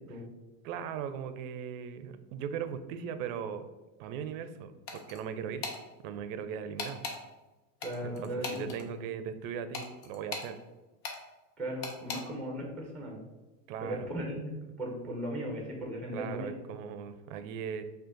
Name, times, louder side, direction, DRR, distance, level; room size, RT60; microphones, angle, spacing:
voice 1, 0.6-3.7 4.0-5.7 6.0-7.0 8.0-10.6 13.7-14.1 16.1-17.8, right 7 dB, 55° right, 10 dB, 0.5 m, -38 dB
sound 1, 4.9-5.2 5.6-5.8 6.8-7.2 7.8-8.8 9.7-10.5 11.0-11.2 11.8-12.2, left 4 dB, 65° left, 1.1 m, -38 dB
voice 2, 7.8-8.7 11.6-13.2 13.8-14.5 14.8-16.6, equal, ahead, 0 dB, 0.7 m, -37 dB
5.0 x 2.5 x 3.8 m, 1.1 s
supercardioid pair, 130°, 49 cm